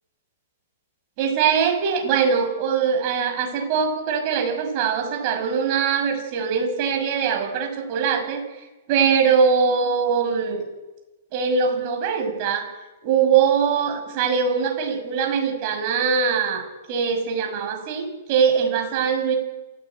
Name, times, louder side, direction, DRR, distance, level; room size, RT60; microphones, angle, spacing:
voice 1, 1.2-8.4 8.9-10.6 11.3-12.7 13.0-16.6 16.9-19.4, right 6 dB, 40° right, 4 dB, 6.6 m, -22 dB
27.5 x 16.0 x 9.0 m, 1.1 s
hypercardioid pair, 150°, 0 cm